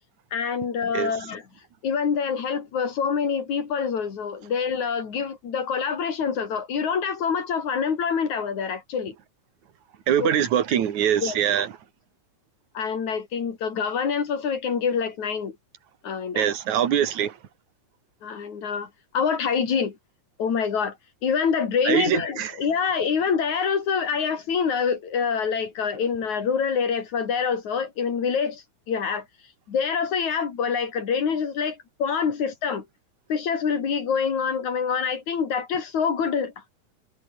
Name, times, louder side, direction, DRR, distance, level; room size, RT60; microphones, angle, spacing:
voice 1, 0.3-1.4 1.8-9.2 10.2-10.3 11.2-11.4 12.7-15.6 16.0-16.5 18.2-18.9 19.1-20.0 20.4-20.9 21.2-28.6 28.9-29.2 29.7-32.9 33.3-36.5, left 6 dB, 65° left, 4.4 m, -26 dB
voice 2, 10.1-11.7 16.3-17.4 21.8-22.5, right 10 dB, 70° right, 3.3 m, -23 dB
omnidirectional pair, 3.6 m